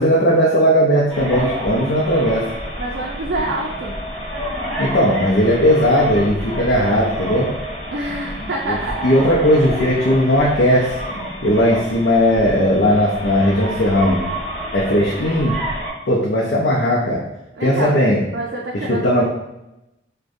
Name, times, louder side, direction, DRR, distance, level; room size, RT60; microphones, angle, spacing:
voice 1, 0.0-2.5 4.8-7.5 8.7-8.8 9.0-11.0 11.4-14.2 14.7-15.6 16.1-17.2 17.6-18.2 18.9-19.2, equal, 65° left, -5 dB, 0.6 m, -17 dB
sound 1, 1.1-15.9, equal, 5° left, 1.4 m, -29 dB
voice 2, 2.8-4.0 7.9-9.1 17.6-18.0 18.3-19.2, right 1 dB, 65° right, -2 dB, 0.4 m, -26 dB
4.9 x 2.2 x 2.6 m, 0.91 s
head